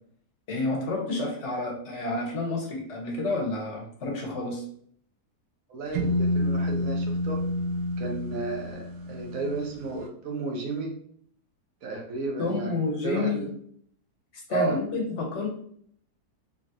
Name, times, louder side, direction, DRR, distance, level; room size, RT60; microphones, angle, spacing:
voice 1, 0.5-4.6 12.4-13.5 14.3-15.5, left 2 dB, 50° left, 0 dB, 1.2 m, -29 dB
voice 2, 5.7-7.4 8.0-11.0 11.8-12.8 13.0-13.5 14.5-14.8, right 3 dB, 60° right, 1 dB, 1.2 m, -33 dB
sound 1, 5.9-9.8, left 1 dB, 85° right, 1.2 m, -29 dB
3.9 x 3.0 x 2.5 m, 0.62 s
omnidirectional pair, 1.7 m